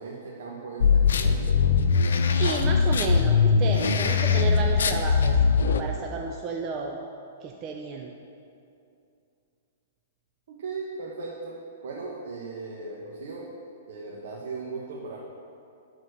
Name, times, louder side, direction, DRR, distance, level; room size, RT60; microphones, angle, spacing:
voice 1, 0.0-1.7 10.5-11.6 11.8-13.5 13.9-15.2, right 4 dB, 70° right, -3 dB, 1.3 m, -37 dB
sound 1, 0.8-5.8, left 5 dB, 80° left, 0.6 m, -21 dB
voice 2, 2.4-7.0 7.4-8.1, right 5 dB, 30° right, 1 dB, 0.7 m, -32 dB
11.0 x 4.3 x 6.6 m, 2.6 s
hypercardioid pair, 135°, 0 cm